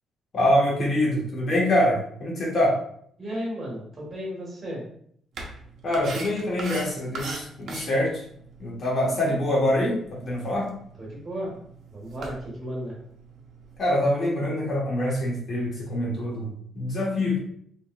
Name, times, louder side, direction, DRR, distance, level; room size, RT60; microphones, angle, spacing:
voice 1, 0.3-2.8 5.8-8.2 8.6-10.7 13.8-17.4, left 1 dB, 40° left, -4 dB, 1.5 m, -25 dB
voice 2, 3.2-4.8 11.0-11.5 11.9-13.0, equal, 30° right, -3 dB, 1.6 m, -34 dB
sound 1, 5.3-13.8, right 3 dB, 60° right, 0.8 m, -42 dB
3.9 x 3.7 x 2.5 m, 0.64 s
cardioid pair, 150°, 0 cm